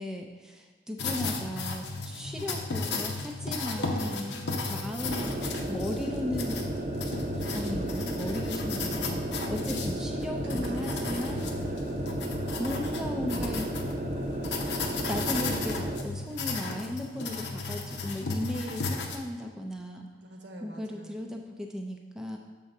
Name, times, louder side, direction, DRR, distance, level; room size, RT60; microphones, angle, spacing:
voice 1, 0.0-6.6 7.5-11.5 12.6-13.7 14.9-20.1 20.6-22.4, left 1 dB, 5° right, 1 dB, 0.4 m, -36 dB
sound 1, 1.0-19.2, left 3 dB, 80° left, 0.8 m, -35 dB
Mallet percussion, 3.8-7.5, right 5 dB, 30° left, 1.0 m, -50 dB
sound 2, 5.0-16.1, right 1 dB, 45° right, 0.7 m, -33 dB
voice 2, 7.1-7.7 10.4-12.1 20.2-21.3, right 1 dB, 80° right, 1 dB, 1.1 m, -46 dB
7.1 x 3.7 x 5.4 m, 1.4 s
head